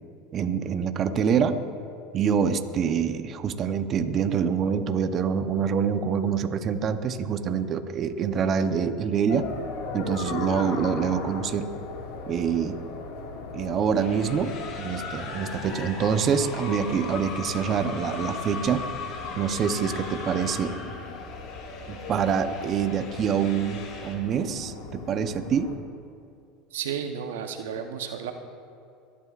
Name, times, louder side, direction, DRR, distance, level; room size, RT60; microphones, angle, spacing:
voice 1, 0.3-1.6 2.1-9.5 9.9-11.7 12.3-12.8 13.5-18.9 19.4-20.8 21.9-25.7, right 7 dB, 40° right, 8 dB, 0.8 m, -26 dB
sound 1, 9.3-25.7, left 4 dB, 75° left, 2.0 m, -38 dB
sound 2, 14.0-24.1, left 4 dB, 60° left, 3.7 m, -39 dB
voice 2, 26.7-28.3, right 8 dB, 90° right, 6 dB, 0.9 m, -32 dB
24.5 x 11.0 x 2.5 m, 2.5 s
supercardioid pair, 105°, 0 cm